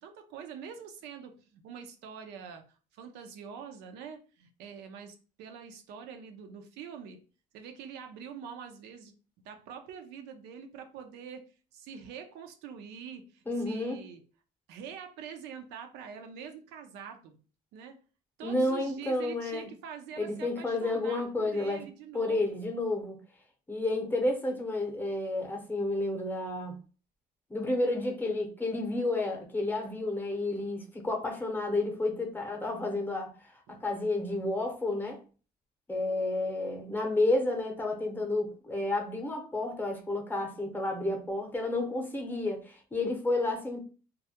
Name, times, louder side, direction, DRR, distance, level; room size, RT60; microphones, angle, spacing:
voice 1, 0.0-7.2 7.5-9.1 9.4-14.2 14.7-17.4 17.7-18.0 18.4-22.7 33.7-33.9, right 7 dB, 90° right, 0.5 m, -45 dB
voice 2, 13.5-14.0 18.4-19.7 20.2-21.9 22.1-23.2 23.7-26.7 27.5-33.3 33.7-35.2 35.9-43.8, left 2 dB, 10° left, 0.7 m, -31 dB
2.3 x 2.0 x 2.7 m
cardioid pair, 110°, 17 cm